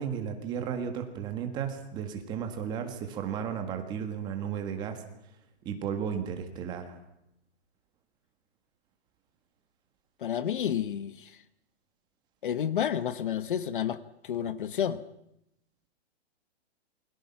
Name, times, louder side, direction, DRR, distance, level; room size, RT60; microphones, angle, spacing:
voice 1, 0.0-5.0 5.6-7.0, right 8 dB, 15° right, 1.6 m, -34 dB
voice 2, 10.2-11.3 12.4-14.0 14.2-15.0, left 9 dB, 50° left, 1.1 m, -30 dB
28.0 x 22.0 x 5.8 m
hypercardioid pair, 175°, 33 cm